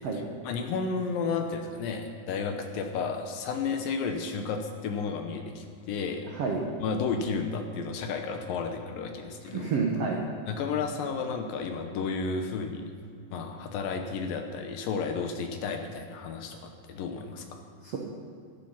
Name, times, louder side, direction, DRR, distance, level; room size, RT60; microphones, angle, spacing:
voice 1, 0.4-6.3 6.8-9.7 10.5-12.9 13.3-17.6, left 5 dB, 75° left, 5 dB, 2.4 m, -32 dB
voice 2, 6.3-6.6 9.4-10.2 17.8-18.0, right 5 dB, 80° right, 0 dB, 1.4 m, -29 dB
13.5 x 11.5 x 5.8 m, 2.4 s
omnidirectional pair, 4.7 m